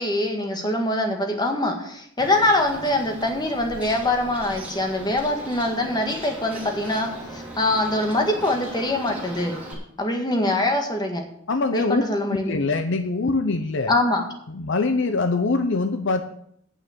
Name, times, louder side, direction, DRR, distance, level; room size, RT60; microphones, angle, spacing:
voice 1, 0.0-9.6 10.0-11.2 11.7-12.6 13.9-14.3, left 1 dB, 20° left, 3 dB, 1.8 m, -24 dB
Bird, 2.2-9.7, right 1 dB, 5° right, 2.9 m, -38 dB
voice 2, 11.5-12.0 12.4-13.9 14.5-16.2, left 3 dB, 60° left, 9 dB, 0.7 m, -23 dB
9.0 x 6.6 x 8.5 m, 0.69 s
head